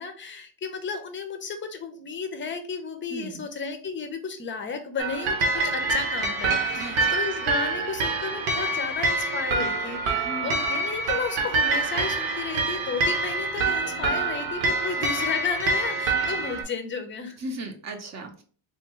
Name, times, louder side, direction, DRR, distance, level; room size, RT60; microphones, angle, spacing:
voice 1, 0.0-17.4, left 5 dB, 25° left, 7 dB, 0.5 m, -33 dB
voice 2, 3.1-3.4 6.8-7.2 10.2-10.6 17.4-18.4, right 1 dB, 35° right, 5 dB, 0.7 m, -37 dB
sound 1, 5.0-16.6, right 3 dB, 70° right, 1.0 m, -26 dB
3.6 x 2.6 x 3.0 m, 0.42 s
cardioid pair, 125°, 50 cm